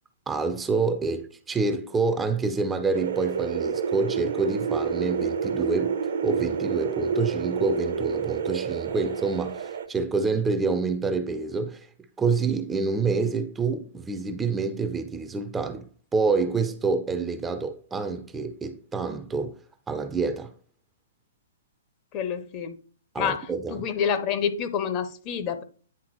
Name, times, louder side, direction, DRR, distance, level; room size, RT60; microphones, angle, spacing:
voice 1, 0.3-11.9 12.2-19.5 19.9-20.5 23.1-23.9, right 4 dB, 10° right, 0.5 m, -27 dB
sound 1, 2.9-9.9, right 6 dB, 60° right, 0.8 m, -28 dB
voice 2, 22.1-22.8 23.2-25.6, left 7 dB, 30° left, 0.7 m, -28 dB
9.6 x 3.6 x 2.9 m
figure-of-eight pair, 115°, 0 cm